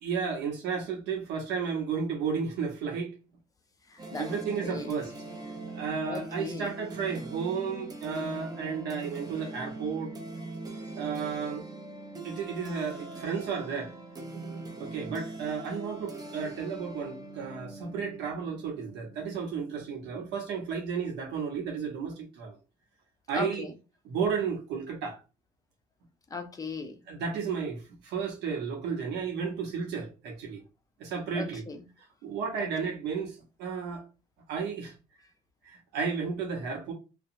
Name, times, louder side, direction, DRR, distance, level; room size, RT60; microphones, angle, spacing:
voice 1, 0.0-3.1 4.2-5.1 5.7-10.1 10.9-11.6 12.2-13.9 14.8-22.6 23.3-23.7 24.0-25.1 27.1-30.6 31.0-31.6 32.2-34.1 34.5-34.9 35.6-36.9, right 6 dB, 80° right, 0.8 m, -33 dB
voice 2, 3.9-4.3 4.6-4.9 6.1-6.7 23.3-23.7 26.3-27.0 31.3-31.8 32.6-32.7, left 3 dB, 20° left, 0.5 m, -37 dB
sound 1, 4.0-20.6, right 2 dB, 20° right, 0.6 m, -42 dB
2.7 x 2.2 x 2.5 m
cardioid pair, 110°, 17 cm